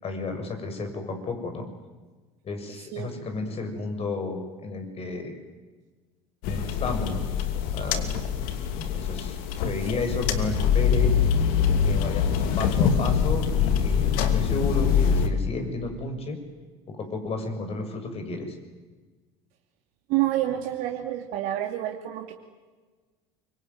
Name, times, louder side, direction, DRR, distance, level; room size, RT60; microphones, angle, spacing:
voice 1, 0.0-1.7 2.4-5.4 6.5-8.2 8.8-9.4 9.6-11.2 11.8-12.3 12.6-16.4 16.9-18.6, left 3 dB, 40° left, 6 dB, 6.8 m, -32 dB
sound 1, 6.4-15.3, left 7 dB, 65° left, 2.9 m, -24 dB
voice 2, 7.9-8.3 20.1-22.3, right 13 dB, 65° right, 2 dB, 2.5 m, -28 dB
24.5 x 24.0 x 9.6 m, 1.3 s
hypercardioid pair, 80°, 16 cm